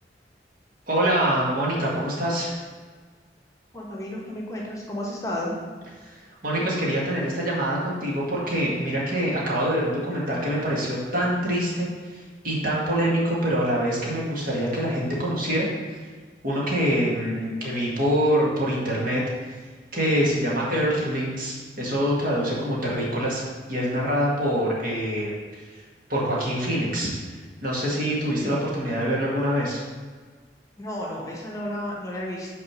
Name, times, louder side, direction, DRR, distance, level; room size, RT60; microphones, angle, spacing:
voice 1, 0.9-2.6 6.0-15.7 16.4-19.2 19.9-23.4 23.7-25.3 25.7-25.8 26.1-27.1 27.6-29.8, equal, 55° right, -4 dB, 1.8 m, -25 dB
voice 2, 3.7-5.5 28.4-28.6 30.8-32.5, left 1 dB, 20° left, -3 dB, 1.1 m, -32 dB
6.0 x 4.2 x 6.2 m, 1.5 s
head